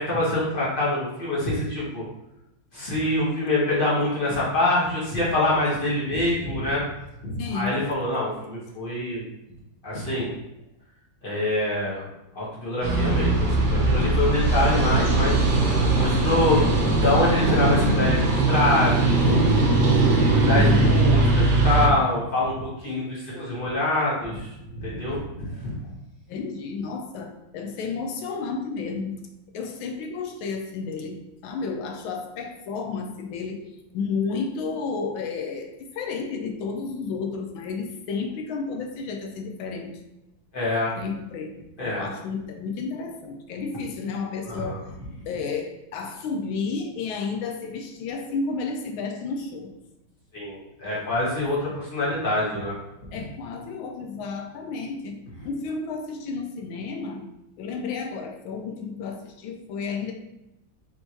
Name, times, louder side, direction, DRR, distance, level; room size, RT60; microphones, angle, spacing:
voice 1, 0.0-2.0 2.7-6.8 7.2-9.2 9.8-10.3 11.2-12.0 12.3-15.4 15.9-16.6 17.0-19.4 20.3-24.5 24.8-25.8 40.5-40.9 41.8-42.0 44.5-44.7 50.3-52.7, left 1 dB, 30° left, -6 dB, 1.3 m, -25 dB
voice 2, 7.4-7.8 20.4-21.0 26.3-29.2 29.5-40.0 41.0-41.6 41.8-44.8 45.3-49.7 51.3-51.5 53.1-55.2 55.4-57.3 57.6-60.1, left 4 dB, 85° left, 4 dB, 1.4 m, -32 dB
sound 1, 12.8-21.9, right 2 dB, 60° right, 1.2 m, -20 dB
4.2 x 3.5 x 3.0 m, 0.88 s
omnidirectional pair, 2.1 m